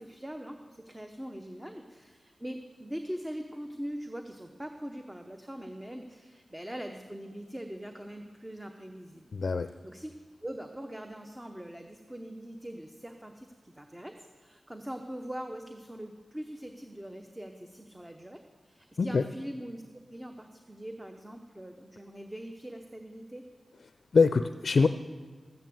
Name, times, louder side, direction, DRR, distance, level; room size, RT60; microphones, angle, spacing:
voice 1, 0.0-9.3 9.8-10.1 10.4-18.4 18.6-19.8 20.1-23.4, equal, 10° right, 5 dB, 0.8 m, -42 dB
voice 2, 9.3-9.7 19.0-19.2 24.1-24.9, left 4 dB, 70° left, 10 dB, 0.4 m, -23 dB
13.0 x 9.1 x 7.7 m, 1.5 s
wide cardioid pair, 100°, 0 cm